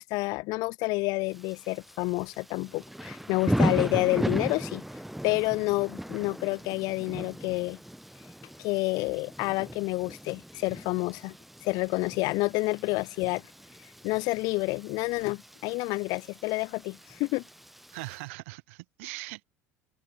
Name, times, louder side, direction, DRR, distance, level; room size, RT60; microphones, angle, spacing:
voice 1, 0.0-4.8 5.2-7.8 8.6-11.3 11.6-13.4 14.0-17.4, left 24 dB, 65° left, 0.8 m, -29 dB
Thunder / Rain, 1.3-18.2, equal, ahead, 0.9 m, -36 dB
voice 2, 17.9-19.4, right 25 dB, 75° right, 2.2 m, -40 dB
open air
hypercardioid pair, 75°, 7 cm